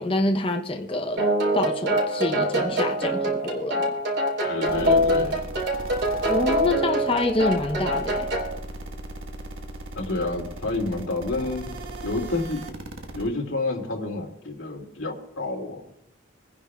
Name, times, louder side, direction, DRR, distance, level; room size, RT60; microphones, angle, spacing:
voice 1, 0.0-4.0 6.3-8.3, left 2 dB, 30° left, 0.7 m, -26 dB
sound 1, 1.2-8.5, equal, 60° right, 3.8 m, -24 dB
voice 2, 4.4-5.5 9.9-11.7 12.0-12.6 13.1-15.8, left 2 dB, 90° left, 2.4 m, -29 dB
sound 2, 4.6-13.3, right 1 dB, 90° right, 1.4 m, -37 dB
25.5 x 9.9 x 2.3 m
head